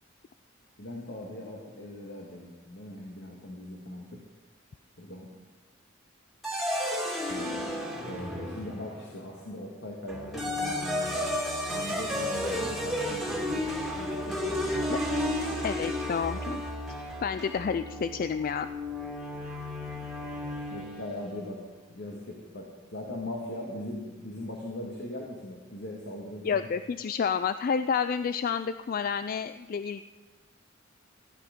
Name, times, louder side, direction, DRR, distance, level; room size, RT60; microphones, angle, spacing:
voice 1, 0.8-4.2 5.0-5.3 7.3-7.6 8.0-11.1 11.6-14.5 20.7-21.6 21.9-26.6, left 1 dB, 60° left, -1 dB, 1.9 m, -40 dB
sound 1, 6.4-9.0 10.1-21.2, left 1 dB, ahead, 2.2 m, -32 dB
voice 2, 15.6-16.6 17.2-18.7 26.4-30.0, left 6 dB, 45° left, 12 dB, 0.3 m, -29 dB
16.0 x 10.5 x 5.2 m, 1.3 s
head